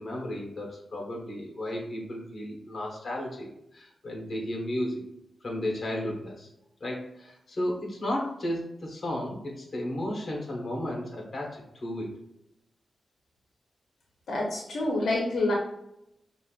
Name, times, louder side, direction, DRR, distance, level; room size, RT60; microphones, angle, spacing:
voice 1, 0.0-5.1 5.4-6.5 6.8-12.1, left 1 dB, 40° left, -1 dB, 1.1 m, -34 dB
voice 2, 14.3-15.5, left 2 dB, 75° left, -2 dB, 0.8 m, -27 dB
5.4 x 2.5 x 2.4 m, 0.82 s
wide cardioid pair, 145°, 0 cm